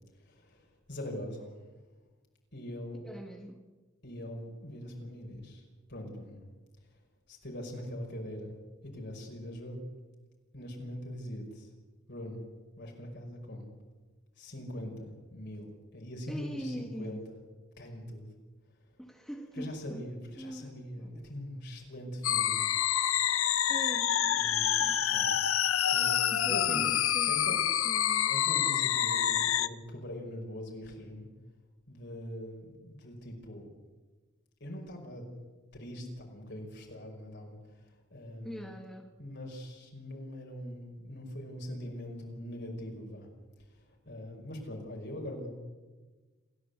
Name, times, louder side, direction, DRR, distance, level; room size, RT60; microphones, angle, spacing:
voice 1, 0.3-1.5 2.5-3.0 4.0-5.6 5.9-6.4 7.3-8.5 8.8-9.8 10.5-11.7 12.1-12.4 12.8-13.7 14.4-17.4 17.8-18.3 19.6-22.6 24.4-25.4 25.8-26.9 27.3-27.6 28.3-31.3 31.9-33.7 34.6-35.3 35.7-37.6 38.1-38.6 39.2-43.3 43.7-43.8 44.1-45.5, equal, 55° left, 0 dB, 5.5 m, -42 dB
voice 2, 3.0-3.6 16.3-17.2 19.0-20.1 20.4-21.3 23.7-25.0 26.3-28.4 38.4-39.1, equal, ahead, 2 dB, 1.6 m, -43 dB
sound 1, 22.2-29.7, left 10 dB, 85° left, 0.8 m, -27 dB
28.0 x 15.0 x 8.2 m, 1.3 s
head